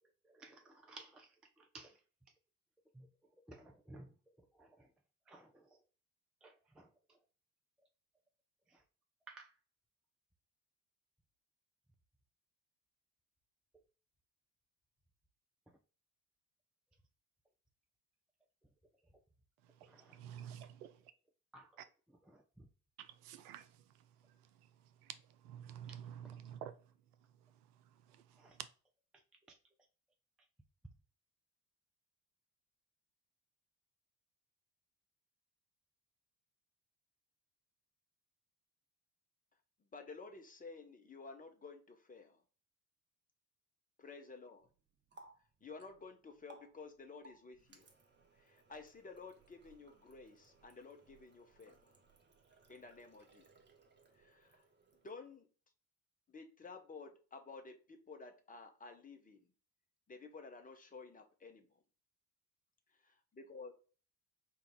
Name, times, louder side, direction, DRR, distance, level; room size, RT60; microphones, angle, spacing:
voice 1, 0.0-2.3 2.9-4.9 5.3-5.8 6.4-7.3 8.7-8.8 9.3-9.6 13.7-13.8 15.7-15.8 18.8-19.2 19.8-20.2 20.5-20.8 21.5-21.8 22.1-22.7 25.9-26.5 28.3-28.6 29.1-29.2 29.5-29.6, right 2 dB, ahead, 0.4 m, -59 dB
voice 2, 19.6-21.1 23.0-28.7, right 10 dB, 70° right, 0.5 m, -52 dB
voice 3, 39.9-42.4 44.0-44.7 45.6-47.8 48.4-51.8 52.7-53.4 54.2-54.5 55.0-55.5 56.3-59.4 60.1-61.7 63.3-63.7, left 4 dB, 15° left, 0.7 m, -52 dB
Water tap faucet, 44.6-55.4, right 3 dB, 20° right, 0.8 m, -65 dB
4.7 x 2.3 x 3.8 m
figure-of-eight pair, 55°, 48 cm